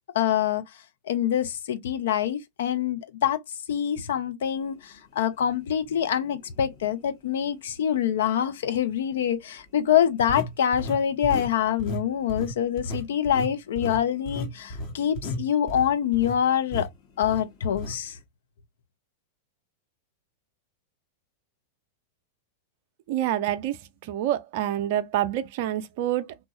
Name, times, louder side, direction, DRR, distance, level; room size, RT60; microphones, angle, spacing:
voice 1, 0.1-0.6 1.1-3.4 3.7-16.9 17.2-18.2, left 9 dB, 60° left, 0.4 m, -25 dB
sound 1, 5.8-5.9 6.6-6.7 10.3-11.5 11.8-12.0 12.3-16.4 16.7-16.9 17.2-17.4 17.7-18.0, left 1 dB, 40° left, 0.9 m, -33 dB
voice 2, 23.1-26.3, right 12 dB, 50° right, 0.4 m, -27 dB
3.0 x 2.2 x 2.6 m
figure-of-eight pair, 90°, 0 cm